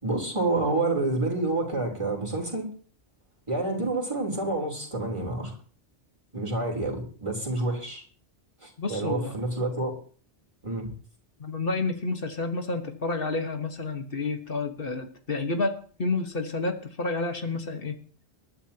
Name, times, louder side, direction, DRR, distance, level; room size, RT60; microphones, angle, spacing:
voice 1, 0.0-2.7 3.5-5.5 6.3-8.0 8.6-9.9 10.6-10.9, right 2 dB, 25° right, -3 dB, 3.8 m, -28 dB
voice 2, 8.8-9.4 11.4-17.9, left 3 dB, 55° left, 6 dB, 1.6 m, -30 dB
22.0 x 11.5 x 2.9 m, 0.43 s
omnidirectional pair, 1.2 m